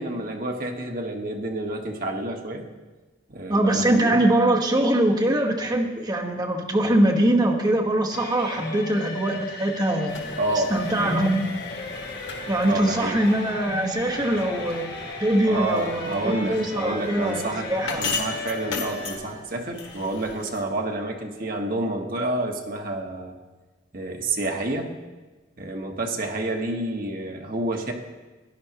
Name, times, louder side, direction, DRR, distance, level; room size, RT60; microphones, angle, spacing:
voice 1, 0.0-2.7 3.3-4.2 10.4-11.2 12.6-13.2 15.4-23.4 23.9-24.9 25.6-27.9, right 2 dB, 50° right, 2 dB, 1.2 m, -29 dB
voice 2, 3.5-10.1 10.7-11.5 12.5-14.9 15.2-18.0, right 1 dB, 25° right, 0 dB, 1.2 m, -22 dB
sound 1, 8.1-19.2, left 3 dB, 55° left, 2.5 m, -36 dB
sound 2, 10.1-20.6, left 4 dB, 90° left, 1.4 m, -38 dB
16.5 x 10.5 x 2.9 m, 1.2 s
head